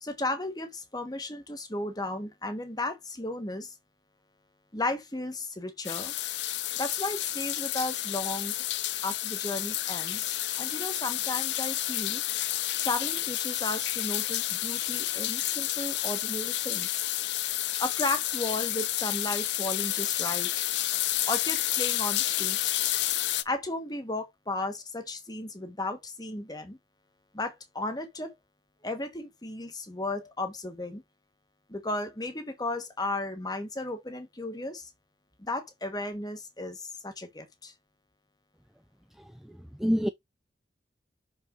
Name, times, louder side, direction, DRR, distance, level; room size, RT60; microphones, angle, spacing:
voice 1, 0.0-3.7 4.7-6.1 6.8-8.5 9.0-12.2 12.8-17.0 17.8-20.6 21.3-22.6 23.4-26.8 27.3-28.3 28.8-31.0 31.7-34.9 35.4-37.7, left 2 dB, 20° left, 1.4 m, -34 dB
sound 1, 5.8-23.4, left 14 dB, 75° left, 0.6 m, -30 dB
voice 2, 39.5-40.1, equal, ahead, 0.4 m, -27 dB
6.2 x 5.4 x 3.8 m
head